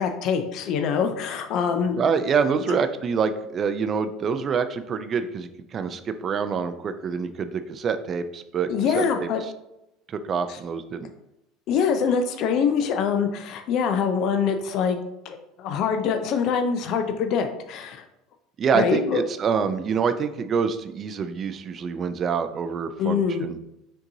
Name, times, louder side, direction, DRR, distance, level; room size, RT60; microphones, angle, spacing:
voice 1, 0.0-2.0 2.7-2.8 8.7-9.4 10.5-10.6 11.7-15.0 15.2-18.0 18.7-19.2 23.0-23.4, left 6 dB, 60° left, 6 dB, 0.4 m, -24 dB
voice 2, 1.9-9.3 10.1-11.1 18.6-23.6, right 6 dB, 40° right, 10 dB, 0.4 m, -26 dB
5.2 x 2.8 x 2.7 m, 0.87 s
supercardioid pair, 90°, 0 cm